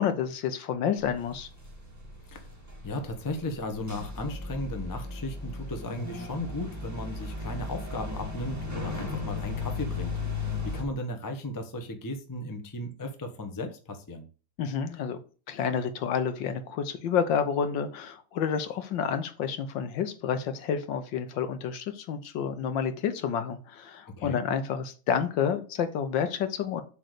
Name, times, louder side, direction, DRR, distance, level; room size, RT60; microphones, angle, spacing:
voice 1, 0.0-1.5 14.6-15.2 15.5-26.8, left 7 dB, 70° left, 9 dB, 1.4 m, -29 dB
sound 1, 1.0-10.8, left 3 dB, 10° right, 1.7 m, -36 dB
voice 2, 2.8-10.1 10.6-14.2 24.2-24.4, left 2 dB, 20° left, 5 dB, 0.5 m, -35 dB
7.7 x 4.0 x 6.5 m, 0.37 s
omnidirectional pair, 2.3 m